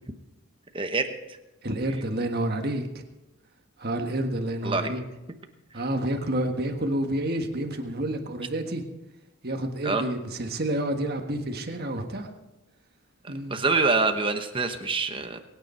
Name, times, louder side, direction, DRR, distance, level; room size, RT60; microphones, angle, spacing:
voice 1, 0.7-1.1 4.6-4.9 9.8-10.0 13.2-15.4, right 3 dB, 20° right, 6 dB, 1.0 m, -25 dB
voice 2, 1.6-3.0 3.8-5.0 5.7-8.8 9.4-12.3 13.3-13.6, right 1 dB, 45° right, 4 dB, 1.5 m, -29 dB
23.0 x 9.6 x 4.4 m, 0.99 s
head